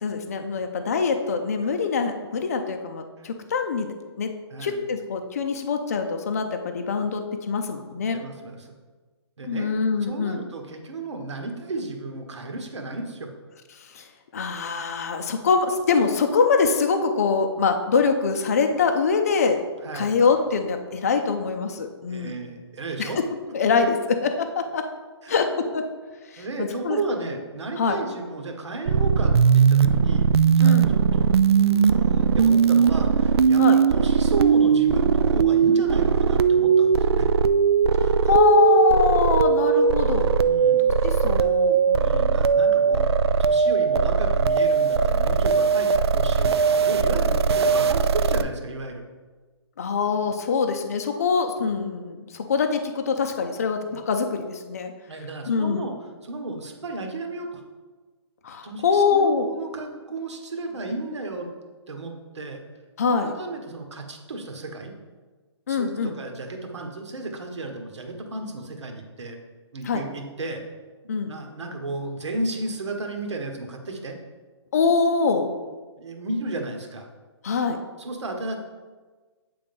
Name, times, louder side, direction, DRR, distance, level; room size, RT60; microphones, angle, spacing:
voice 1, 0.0-3.9 4.2-4.3 4.6-8.2 9.4-10.4 13.9-14.0 14.3-19.6 19.9-22.3 23.0-23.1 23.5-24.0 24.2-24.8 25.3-25.8 26.3-27.0 27.8-28.0 30.6-30.9 33.6-33.8 38.0-40.3 41.0-42.1 49.8-54.9 55.5-55.8 58.4-59.5 63.0-63.3 65.7-66.2 69.8-70.0 71.1-71.3 74.7-75.5 77.4-77.8, left 5 dB, 35° left, 6 dB, 0.5 m, -24 dB
voice 2, 8.0-8.7 9.4-9.7 10.1-13.3 19.8-20.1 22.1-23.2 25.2-25.5 26.4-33.6 33.9-37.3 40.4-40.8 41.4-41.5 42.0-49.0 55.1-55.9 56.2-57.6 58.6-61.5 61.9-62.6 63.1-64.9 65.7-69.4 69.7-70.6 71.3-74.2 76.0-77.1 78.0-78.6, right 2 dB, 85° right, 3 dB, 1.5 m, -33 dB
sound 1, 28.9-48.4, right 6 dB, 65° right, 0.4 m, -19 dB
8.3 x 3.8 x 5.3 m, 1.3 s
hypercardioid pair, 175°, 15 cm